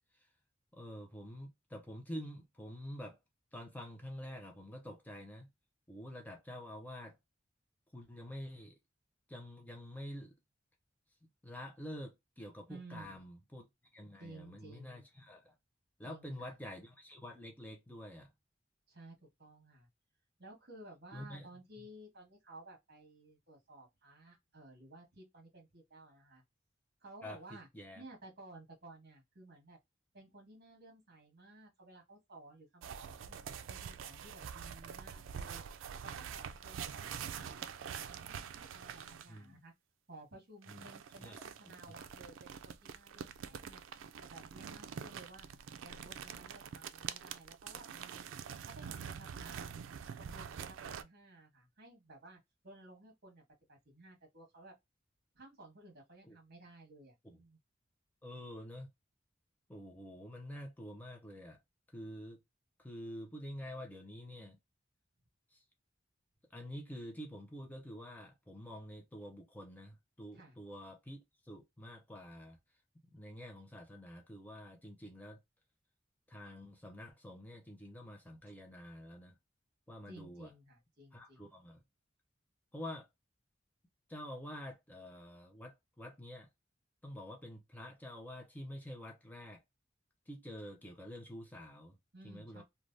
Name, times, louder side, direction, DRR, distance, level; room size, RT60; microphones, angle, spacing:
voice 1, 0.7-3.2 3.5-5.5 5.9-7.2 7.9-8.8 9.3-10.3 11.4-13.7 13.9-15.5 16.0-18.3 21.1-21.5 21.8-21.9 27.2-27.4 27.7-28.0 39.3-39.6 40.7-40.9 41.2-41.4 56.3-56.4 58.2-58.9 59.7-61.6 61.9-62.4 62.8-64.6 65.5-65.6 66.5-71.2 71.4-72.6 73.1-75.4 76.3-79.3 79.9-80.5 81.1-81.8 82.7-83.1 84.1-86.5 87.0-89.6 90.3-92.0 92.2-92.6, equal, 10° left, 0.5 m, -47 dB
voice 2, 12.7-13.2 14.2-15.1 16.0-16.6 18.9-19.9 20.4-26.4 27.0-27.7 27.9-29.8 30.1-33.4 33.7-35.6 36.0-39.7 40.1-43.8 44.2-45.5 45.8-48.3 48.6-49.8 50.2-53.4 53.7-54.7 55.3-57.6 70.3-70.6 80.1-81.5 92.1-92.6, right 2 dB, 55° right, 1.5 m, -55 dB
sound 1, 32.8-39.4 40.6-51.0, right 7 dB, 85° right, 0.3 m, -45 dB
3.2 x 2.2 x 2.5 m
head